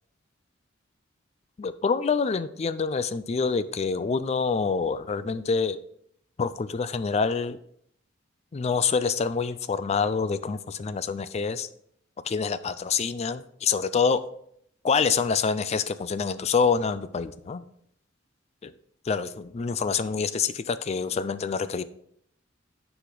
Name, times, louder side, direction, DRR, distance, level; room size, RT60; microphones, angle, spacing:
voice 1, 1.6-5.8 6.4-7.6 8.5-11.7 12.3-14.2 14.8-17.6 19.1-21.8, left 5 dB, 35° left, 14 dB, 0.4 m, -26 dB
9.8 x 4.9 x 3.9 m, 0.70 s
head